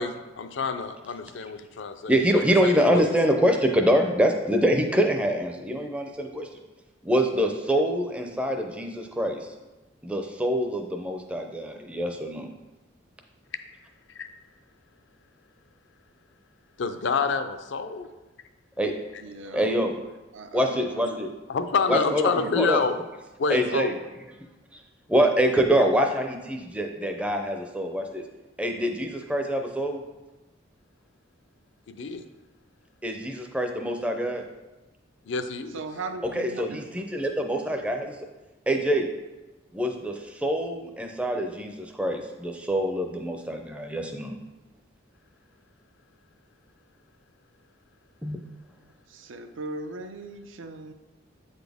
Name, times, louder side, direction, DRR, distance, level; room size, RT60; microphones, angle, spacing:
voice 1, 0.0-3.0 14.1-14.3 16.8-18.1 21.5-22.9 23.4-23.9 31.9-32.2 35.3-35.8, left 5 dB, 60° left, 9 dB, 0.4 m, -28 dB
voice 2, 2.1-6.5 7.0-9.5 10.0-12.5 18.8-18.9 19.5-20.0 20.5-21.3 21.9-22.8 23.5-23.9 25.1-28.2 28.6-30.0 33.0-34.5 36.4-38.2 38.7-39.1 39.7-44.3 48.2-48.4, equal, 5° right, 4 dB, 0.5 m, -25 dB
voice 3, 19.2-19.9 20.3-21.2 21.9-22.7 35.7-37.1 49.1-50.9, right 3 dB, 70° right, 8 dB, 0.5 m, -38 dB
8.3 x 4.1 x 3.5 m, 1.1 s
head